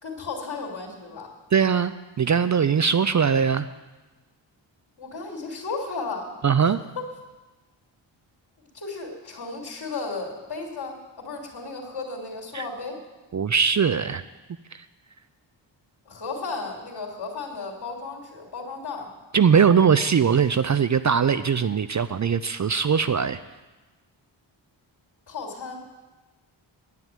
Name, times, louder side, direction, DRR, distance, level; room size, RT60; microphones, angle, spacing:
voice 1, 0.0-1.3 5.0-6.3 6.9-7.1 8.6-13.0 16.0-19.1 25.3-25.8, left 4 dB, 55° left, -3 dB, 3.0 m, -34 dB
voice 2, 1.5-3.7 6.4-6.8 12.5-12.7 13.3-14.2 19.3-23.4, right 6 dB, 40° right, 13 dB, 0.5 m, -21 dB
9.6 x 9.3 x 9.0 m, 1.2 s
cardioid pair, 65°, 47 cm